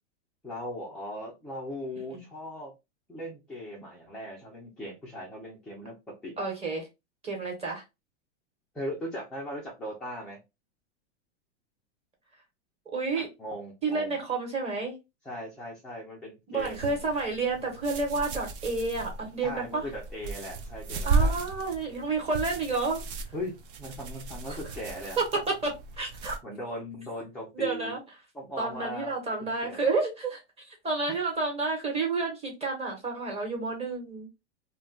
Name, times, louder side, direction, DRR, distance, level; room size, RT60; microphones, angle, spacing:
voice 1, 0.4-2.7 3.1-6.4 8.7-10.4 13.2-14.2 15.2-17.0 19.4-21.5 23.3-25.2 26.4-27.9 28.3-29.1 29.4-29.8 31.1-31.2, equal, ahead, 0.3 m, -39 dB
voice 2, 6.4-6.9 7.2-7.8 12.9-13.3 13.8-14.9 16.5-19.9 21.0-23.0 24.5-24.6 25.2-25.3 25.6-26.4 27.5-28.0 28.6-34.3, right 3 dB, 15° right, 1.0 m, -30 dB
sound 1, 16.6-26.4, right 3 dB, 50° right, 0.6 m, -34 dB
2.2 x 2.1 x 3.7 m
hypercardioid pair, 140°, 35 cm